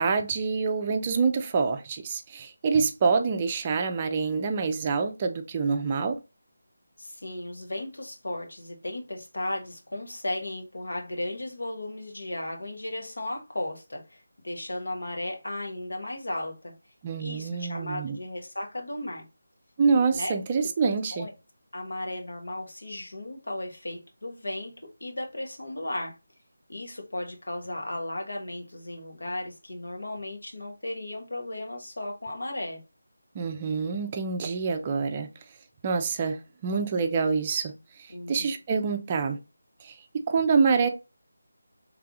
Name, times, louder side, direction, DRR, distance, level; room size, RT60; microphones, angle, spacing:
voice 1, 0.0-6.2 17.0-18.2 19.8-21.3 33.3-35.3 35.8-39.4 39.8-40.9, right 5 dB, 25° right, 0.4 m, -26 dB
voice 2, 7.0-16.7 17.2-19.3 20.1-20.3 21.1-21.3 21.7-26.2 26.7-32.8 38.1-38.5, left 1 dB, 75° left, 1.2 m, -35 dB
4.6 x 3.3 x 2.4 m
figure-of-eight pair, 160°, 0 cm